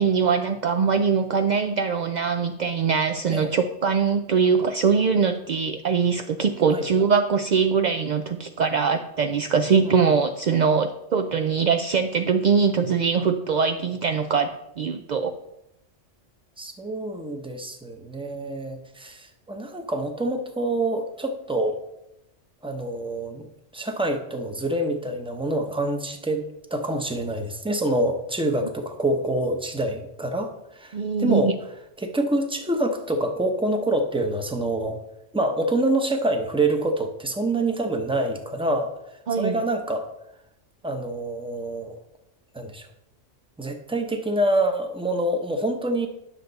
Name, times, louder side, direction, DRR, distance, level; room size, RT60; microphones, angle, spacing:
voice 1, 0.0-15.4 30.9-31.5 39.3-39.6, right 5 dB, 70° right, 6 dB, 0.4 m, -22 dB
voice 2, 16.6-21.8 22.6-23.5 23.7-26.4 26.7-31.5 32.0-35.0 35.3-38.9 39.3-40.1 40.8-42.0 42.5-42.9 43.6-46.1, right 1 dB, 5° right, 4 dB, 0.7 m, -26 dB
10.0 x 6.6 x 4.0 m, 0.85 s
omnidirectional pair, 1.3 m